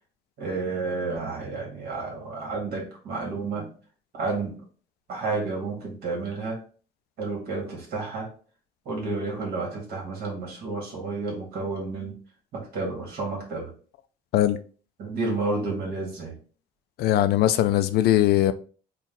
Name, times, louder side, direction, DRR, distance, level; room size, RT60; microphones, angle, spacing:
voice 1, 0.4-3.7 4.1-4.6 5.1-6.6 7.2-8.3 8.9-12.2 12.5-13.7 15.0-16.4, right 3 dB, 65° right, 1.9 m, -31 dB
voice 2, 17.0-18.5, left 13 dB, 70° left, 0.4 m, -20 dB
4.3 x 2.4 x 3.8 m
cardioid pair, 110°, 17 cm